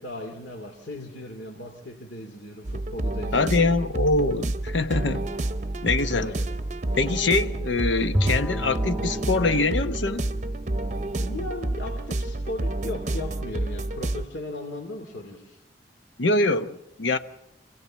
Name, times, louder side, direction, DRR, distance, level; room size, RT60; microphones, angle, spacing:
voice 1, 0.0-3.7 6.1-6.5 11.2-15.6, left 1 dB, 75° left, 2.6 m, -37 dB
sound 1, 2.6-14.3, right 2 dB, 40° right, 0.7 m, -29 dB
voice 2, 3.3-5.3 5.8-6.3 7.0-10.2 16.2-17.2, left 3 dB, 90° left, 1.0 m, -24 dB
Bowed string instrument, 8.1-12.4, equal, 5° right, 1.2 m, -32 dB
26.5 x 16.5 x 7.4 m
head